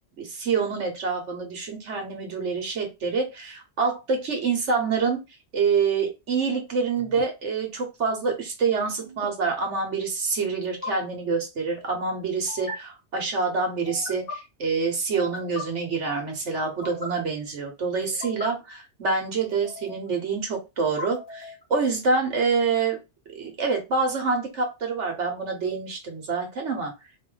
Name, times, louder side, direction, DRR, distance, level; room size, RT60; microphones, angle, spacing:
voice 1, 0.2-5.2 5.5-23.0 23.3-26.9, right 4 dB, 90° right, 4 dB, 1.5 m, -26 dB
sound 1, 7.0-7.2 9.0-9.3 10.6-10.9 12.5-12.8 13.9-14.4 15.1-15.6 16.6-17.1 18.0-18.5 19.5-20.1 20.8-21.6, left 2 dB, 50° left, 1.8 m, -38 dB
4.3 x 2.7 x 3.9 m, 0.24 s
omnidirectional pair, 1.2 m